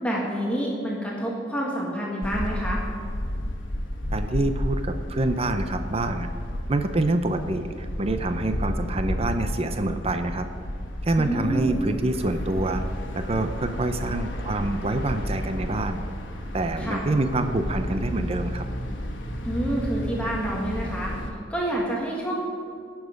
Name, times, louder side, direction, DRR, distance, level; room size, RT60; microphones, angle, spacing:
voice 1, 0.0-2.8 11.2-11.8 16.8-17.0 19.4-21.1 21.5-22.4, right 1 dB, 5° left, -4 dB, 1.8 m, -28 dB
sound 1, 2.2-21.3, equal, 85° left, 1.3 m, -32 dB
voice 2, 4.1-6.3 6.7-10.4 11.0-12.8 13.1-16.0 16.5-18.6, right 2 dB, 35° right, 8 dB, 0.6 m, -26 dB
17.0 x 7.3 x 5.2 m, 2.3 s
head